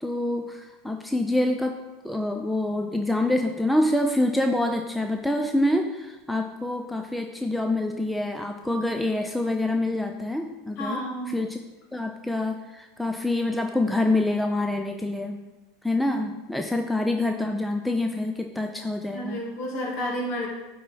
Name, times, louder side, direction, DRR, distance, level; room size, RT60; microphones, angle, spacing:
voice 1, 0.0-1.8 2.0-11.6 11.9-15.4 15.8-19.4, left 1 dB, 5° left, 4 dB, 0.5 m, -26 dB
voice 2, 10.8-11.3 19.1-20.5, equal, 55° left, -1 dB, 2.3 m, -30 dB
9.2 x 4.3 x 4.2 m, 1.1 s
hypercardioid pair, 100°, 0 cm